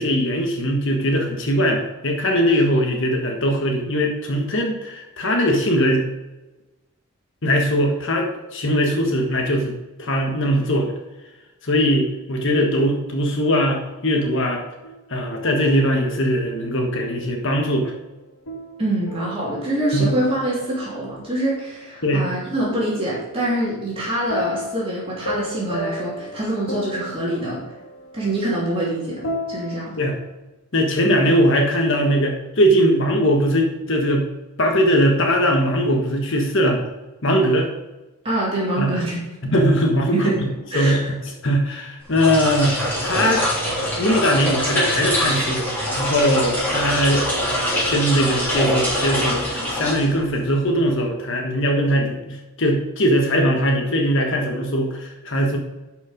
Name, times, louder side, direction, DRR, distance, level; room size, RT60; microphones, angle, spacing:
voice 1, 0.0-6.0 7.4-10.9 11.6-14.6 15.1-17.9 19.9-20.1 22.0-22.3 30.0-30.2 30.7-34.3 34.6-36.8 37.2-37.7 38.8-38.9 39.5-40.3 40.7-41.2 41.4-43.5 44.0-45.7 46.0-47.2 47.9-55.6, equal, 55° left, 1 dB, 1.4 m, -20 dB
sound 1, 14.8-17.5 18.5-21.8 24.3-30.3, left 1 dB, 85° left, 1.4 m, -34 dB
voice 2, 18.8-27.6 28.1-29.9 31.0-31.3 38.2-39.2 40.1-40.4 40.7-41.0, right 1 dB, 25° right, -6 dB, 2.8 m, -25 dB
sound 2, 42.0-50.5, equal, 10° left, 3.4 m, -24 dB
11.5 x 5.3 x 5.1 m, 1.1 s
head